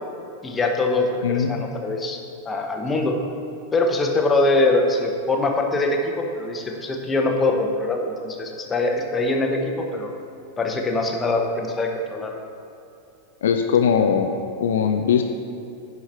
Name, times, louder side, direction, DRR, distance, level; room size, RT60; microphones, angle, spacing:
voice 1, 0.4-2.2 2.4-3.2 3.7-10.1 10.6-12.4, left 2 dB, 15° left, 2 dB, 1.0 m, -23 dB
voice 2, 1.2-1.6 13.4-14.3 14.6-15.2, left 7 dB, 60° left, 5 dB, 0.5 m, -20 dB
9.9 x 4.8 x 5.6 m, 2.7 s
figure-of-eight pair, 90°, 0 cm